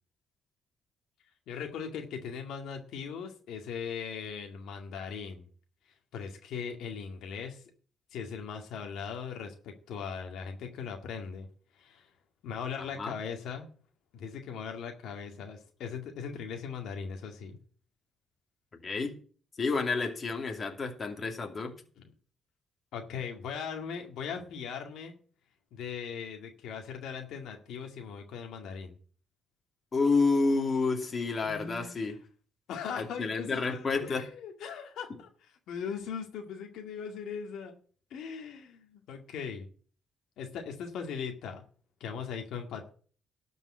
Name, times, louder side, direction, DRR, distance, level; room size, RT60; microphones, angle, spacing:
voice 1, 1.5-5.5 6.1-7.6 8.1-11.5 11.7-12.1 12.4-13.7 14.1-17.6 22.0-22.1 22.9-25.1 25.7-29.0 31.4-31.9 32.7-37.7 38.1-39.7 40.4-41.6 42.0-42.9, left 6 dB, 80° left, 3 dB, 2.1 m, -39 dB
voice 2, 18.8-19.2 19.6-21.7 29.9-32.2 33.0-34.3, left 4 dB, 40° left, 3 dB, 2.6 m, -29 dB
12.5 x 5.5 x 8.4 m, 0.43 s
cardioid pair, 90°, 0 cm